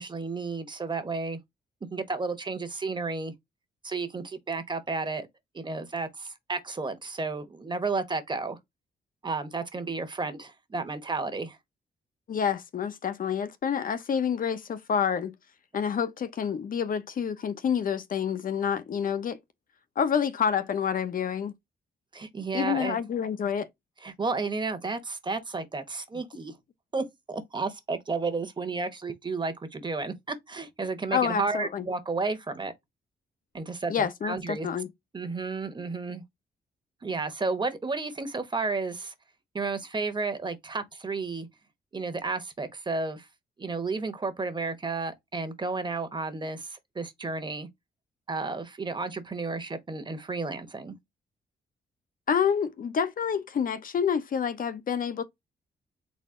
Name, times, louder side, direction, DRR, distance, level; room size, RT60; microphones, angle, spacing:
voice 1, 0.0-1.4 1.9-3.3 3.8-5.3 5.5-8.6 9.2-11.6 22.1-23.0 24.0-26.5 26.9-32.7 33.5-34.7 35.1-36.2 37.0-39.1 39.5-41.5 41.9-43.3 43.6-47.7 48.3-50.9, right 3 dB, 30° right, 1.2 m, -32 dB
voice 2, 12.3-15.3 15.7-19.4 20.0-21.5 22.5-23.7 31.1-31.9 33.9-34.9 52.3-55.2, left 7 dB, 55° left, 0.8 m, -28 dB
4.2 x 2.7 x 3.7 m
cardioid pair, 90°, 17 cm